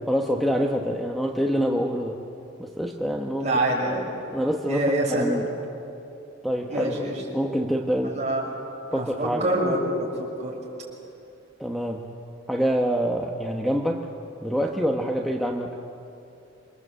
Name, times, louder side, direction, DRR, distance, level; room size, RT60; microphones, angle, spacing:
voice 1, 0.0-2.2 2.6-3.5 4.3-4.8 5.1-5.5 6.4-7.1 7.3-8.2 8.9-9.4 11.6-12.0 12.5-14.1 14.4-15.8, equal, ahead, 1 dB, 1.1 m, -26 dB
voice 2, 3.4-4.1 4.7-5.3 6.7-7.2 8.0-8.5 8.9-10.6, right 1 dB, 35° right, -3 dB, 6.8 m, -26 dB
27.5 x 25.5 x 8.2 m, 2.8 s
head